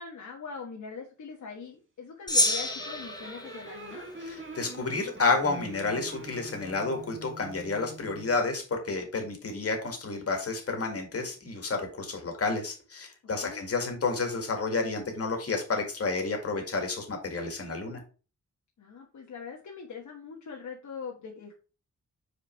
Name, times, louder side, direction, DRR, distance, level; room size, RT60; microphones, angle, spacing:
voice 1, 0.0-4.1 13.4-13.6 18.8-21.5, left 5 dB, 70° left, -1 dB, 1.3 m, -42 dB
Gong, 2.3-4.9, left 1 dB, 15° left, 1.1 m, -30 dB
sound 1, 2.5-8.5, right 1 dB, 40° right, 1.6 m, -44 dB
voice 2, 4.3-18.0, left 3 dB, 50° left, 3 dB, 2.0 m, -30 dB
5.3 x 4.7 x 4.4 m, 0.35 s
wide cardioid pair, 110°, 31 cm